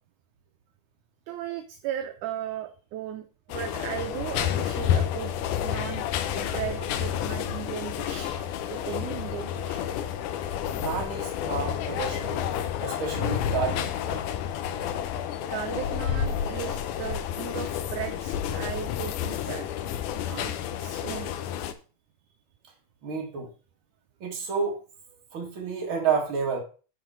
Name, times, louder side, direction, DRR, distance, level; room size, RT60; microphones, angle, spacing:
voice 1, 1.3-5.3 5.6-6.1 6.4-8.3 8.7-9.8 12.6-13.0 15.5-19.7 20.3-21.3, right 11 dB, 75° right, 7 dB, 2.0 m, -36 dB
sound 1, 3.5-21.7, left 9 dB, 75° left, 2.1 m, -30 dB
voice 2, 10.8-12.4 12.8-14.2 23.0-23.5 24.2-24.8 25.3-26.6, right 6 dB, 40° right, 0 dB, 2.6 m, -30 dB
11.5 x 4.1 x 4.4 m, 0.36 s
omnidirectional pair, 3.9 m